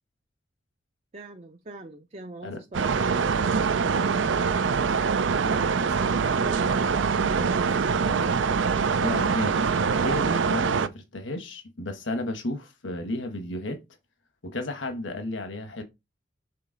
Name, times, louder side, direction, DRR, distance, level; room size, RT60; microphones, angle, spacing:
voice 1, 1.1-4.5 5.1-8.4, right 2 dB, 35° right, 0.6 m, -41 dB
sound 1, 2.7-10.9, right 5 dB, 80° right, 0.5 m, -24 dB
voice 2, 9.0-9.6 10.0-13.8 14.4-15.8, left 2 dB, 80° left, 1.2 m, -33 dB
6.8 x 4.0 x 3.9 m
head